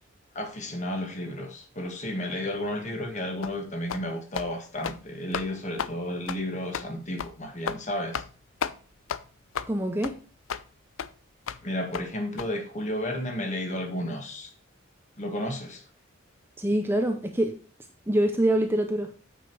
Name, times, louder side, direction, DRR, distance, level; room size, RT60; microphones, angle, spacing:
voice 1, 0.3-8.2 11.6-14.5 15.2-15.8, left 1 dB, 35° left, 4 dB, 1.8 m, -32 dB
sound 1, 3.4-3.6 3.9-4.1 4.3-4.5 4.8-5.0 5.3-5.5 5.8-5.9 6.3-6.4 6.7-6.9 7.2-7.3 7.7-7.8 8.1-8.3 8.6-8.8 9.1-9.2 9.5-9.7 10.0-10.1 10.5-10.6 11.0-11.1 11.5-11.6 11.9-12.1 12.4-12.5, left 7 dB, 75° left, 0.5 m, -32 dB
voice 2, 9.7-10.2 16.6-17.6 18.1-19.1, right 1 dB, 10° right, 5 dB, 0.6 m, -25 dB
8.7 x 5.1 x 4.7 m, 0.39 s
head